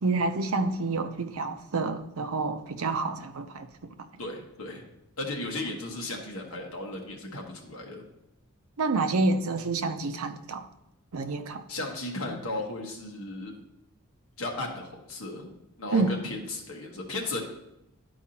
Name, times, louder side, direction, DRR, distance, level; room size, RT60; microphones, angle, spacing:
voice 1, 0.0-3.9 8.8-10.7 11.1-11.7 15.9-16.1, right 3 dB, 75° right, 8 dB, 0.6 m, -28 dB
voice 2, 4.2-4.8 5.2-8.0 11.7-13.6 14.4-15.5 15.8-17.4, left 2 dB, 70° left, 1 dB, 1.3 m, -35 dB
11.5 x 4.7 x 2.8 m, 0.85 s
head